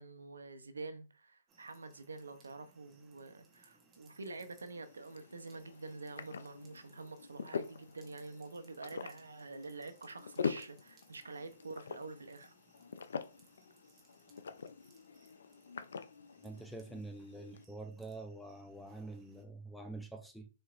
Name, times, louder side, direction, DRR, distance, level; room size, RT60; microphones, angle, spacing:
voice 1, 0.0-12.5, right 3 dB, 90° right, 0.7 m, -47 dB
sound 1, 1.5-19.4, right 4 dB, 20° right, 1.0 m, -68 dB
sound 2, 4.7-17.6, left 6 dB, 75° left, 0.5 m, -45 dB
voice 2, 16.4-20.5, right 2 dB, ahead, 0.5 m, -46 dB
4.2 x 2.8 x 2.5 m
hypercardioid pair, 140°, 0 cm